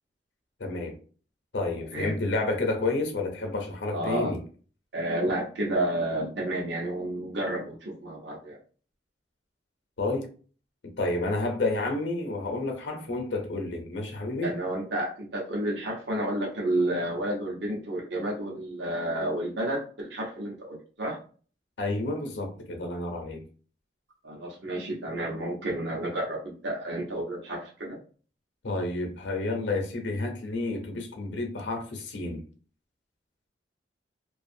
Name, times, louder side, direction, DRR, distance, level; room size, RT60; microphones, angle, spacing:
voice 1, 0.6-1.0 1.5-4.4 10.0-10.3 10.8-14.6 21.8-23.4 28.6-32.4, left 2 dB, 75° left, 0.7 m, -30 dB
voice 2, 3.9-4.3 4.9-8.6 14.4-21.2 24.2-28.0, right 1 dB, 75° right, 0.7 m, -31 dB
2.4 x 2.3 x 2.6 m
head